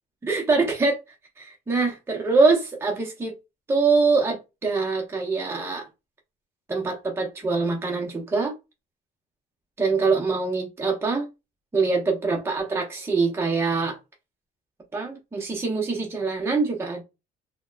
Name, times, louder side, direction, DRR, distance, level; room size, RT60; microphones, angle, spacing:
voice 1, 0.2-1.0 1.4-3.3 3.7-5.9 6.7-8.5 9.8-11.3 11.7-14.0 14.9-17.0, right 4 dB, 15° right, 0.8 m, -24 dB
3.5 x 2.2 x 2.3 m
cardioid pair, 110°, 17 cm